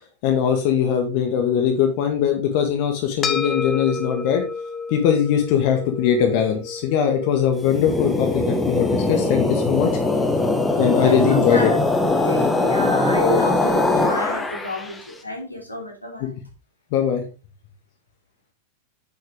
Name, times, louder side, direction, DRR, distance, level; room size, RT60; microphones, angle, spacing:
voice 1, 0.2-4.4 4.9-9.9 10.8-11.7 12.8-12.9 16.2-16.3 16.9-17.2, left 8 dB, 45° left, 4 dB, 1.6 m, -21 dB
sound 1, 3.2-11.8, left 5 dB, 25° left, 1.2 m, -33 dB
sound 2, 7.6-15.0, left 2 dB, 10° left, 1.5 m, -21 dB
voice 2, 11.0-11.8 12.2-16.3, left 1 dB, 85° left, 1 dB, 3.0 m, -29 dB
9.4 x 6.5 x 3.6 m, 0.33 s
figure-of-eight pair, 90°, 0 cm